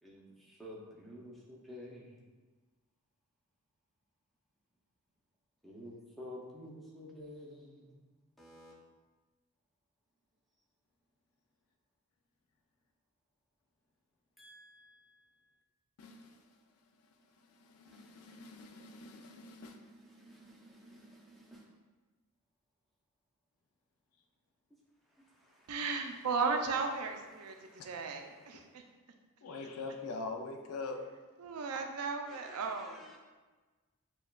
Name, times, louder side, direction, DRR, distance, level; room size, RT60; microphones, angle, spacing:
voice 1, 0.0-2.2 5.6-8.0 8.4-8.7 14.4-15.3 17.9-18.3 19.6-21.7 25.2-28.1 28.4-28.6 30.5-30.7 32.3-33.2, left 1 dB, ahead, -5 dB, 0.6 m, -53 dB
voice 2, 16.0-16.6 17.0-19.8 27.8-27.9 29.4-31.0, left 3 dB, 80° left, 4 dB, 0.5 m, -44 dB
voice 3, 25.7-27.5 27.8-28.8 31.4-33.0, right 4 dB, 80° right, 5 dB, 0.4 m, -35 dB
6.8 x 2.3 x 2.3 m, 1.3 s
head